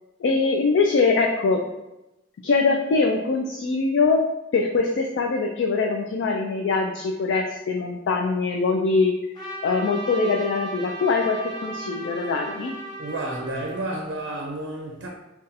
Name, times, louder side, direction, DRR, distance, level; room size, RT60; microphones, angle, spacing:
voice 1, 0.2-1.6 2.4-4.2 4.5-9.1 9.6-12.7, left 4 dB, 75° left, 0.3 m, -22 dB
Trumpet, 9.3-14.0, right 2 dB, 25° left, 0.7 m, -36 dB
voice 2, 13.0-15.1, right 2 dB, 85° right, 0.5 m, -31 dB
3.9 x 2.3 x 2.6 m
head